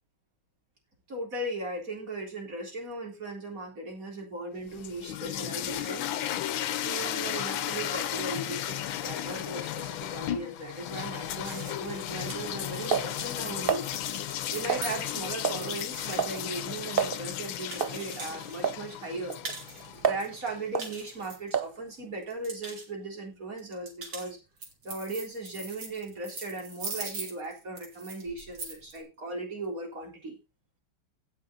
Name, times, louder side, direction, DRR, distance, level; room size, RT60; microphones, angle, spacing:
voice 1, 1.1-6.1 6.7-13.9 14.5-19.4 20.0-24.4 24.8-30.4, right 2 dB, 40° right, 1 dB, 4.1 m, -37 dB
sound 1, 4.6-20.7, left 12 dB, 75° left, 1.5 m, -35 dB
sound 2, 11.4-18.6 18.9-19.9 20.2-21.9 22.2-22.9 23.6-29.0, right 3 dB, 65° right, 3.6 m, -42 dB
sound 3, 11.6-13.9 14.7-15.1 15.4-15.7 15.9-16.4 16.7-16.8 17.0-17.2 17.8-18.0 18.6-18.8 19.3-20.3 20.8-20.9 21.5-21.8, right 6 dB, 85° right, 0.5 m, -30 dB
16.5 x 6.8 x 3.8 m, 0.26 s
omnidirectional pair, 2.2 m